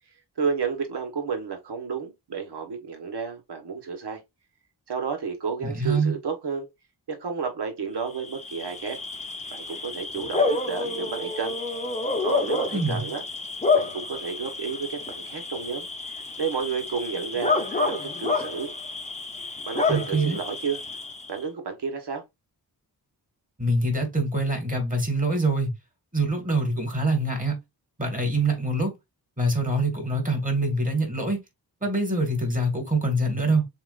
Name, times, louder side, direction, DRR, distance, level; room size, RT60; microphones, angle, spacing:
voice 1, 0.4-4.2 4.9-6.7 7.1-9.0 9.5-11.6 12.2-13.2 13.7-15.9 16.4-18.7 19.6-20.8 21.3-22.2, right 5 dB, 75° right, 1.3 m, -31 dB
voice 2, 5.6-6.1 12.7-13.1 19.9-20.4 23.6-25.7 26.1-27.6 28.0-29.0 29.4-31.4 31.8-33.6, right 2 dB, 20° right, 1.9 m, -25 dB
Bark / Cricket, 8.1-21.4, left 3 dB, 15° left, 0.8 m, -29 dB
7.1 x 2.4 x 2.5 m
wide cardioid pair, 125°, 41 cm